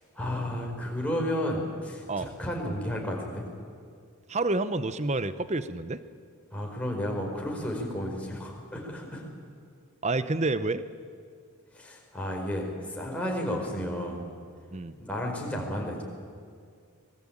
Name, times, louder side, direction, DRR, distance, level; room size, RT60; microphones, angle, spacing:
voice 1, 0.1-3.5 6.5-9.2 11.7-14.2 15.0-16.0, equal, 5° left, -1 dB, 4.6 m, -32 dB
voice 2, 4.3-6.0 10.0-10.8 14.7-14.9, right 2 dB, 30° right, 13 dB, 0.8 m, -28 dB
25.0 x 20.5 x 8.7 m, 2.2 s
head